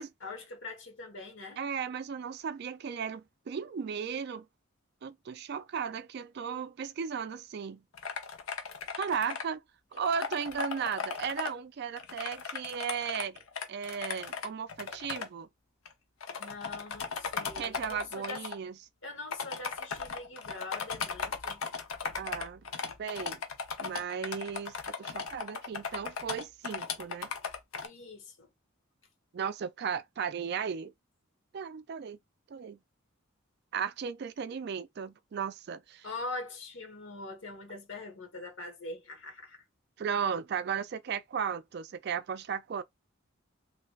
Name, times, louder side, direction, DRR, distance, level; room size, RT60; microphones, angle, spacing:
voice 1, 0.2-1.6 16.4-18.4 19.0-21.6 27.8-28.5 36.0-39.6, left 2 dB, 60° left, 1.3 m, -43 dB
voice 2, 1.6-4.5 5.0-7.8 9.0-9.6 9.9-13.4 13.7-15.5 17.6-18.7 22.2-22.6 23.0-23.4 23.8-27.3 29.3-30.9 31.5-32.2 32.5-32.8 33.7-36.1 40.0-42.8, right 7 dB, 50° right, 0.3 m, -35 dB
sound 1, 7.9-9.4 10.0-11.5 12.0-15.3 15.9-16.0 16.2-18.6 19.3-27.9, left 5 dB, 85° left, 0.7 m, -37 dB
3.2 x 3.1 x 2.3 m
head